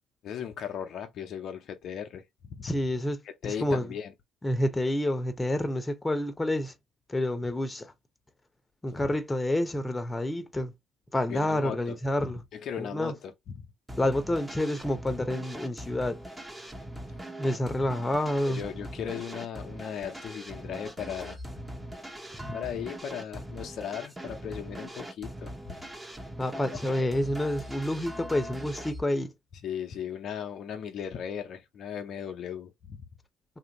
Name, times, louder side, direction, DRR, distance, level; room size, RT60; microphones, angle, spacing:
voice 1, 0.2-2.2 2.5-2.7 3.4-4.1 8.9-9.1 11.3-13.7 18.5-21.4 22.5-25.8 26.9-27.1 29.6-33.0, left 8 dB, 65° left, 0.5 m, -37 dB
voice 2, 2.6-3.2 3.4-3.9 4.4-6.7 7.1-7.9 8.8-10.7 11.1-12.4 12.8-13.1 14.0-16.2 17.4-18.6 22.4-22.5 26.4-29.3, left 1 dB, 20° left, 0.8 m, -28 dB
sound 1, 13.9-29.0, equal, 15° right, 1.0 m, -41 dB
2.8 x 2.5 x 2.8 m
hypercardioid pair, 60°, 0 cm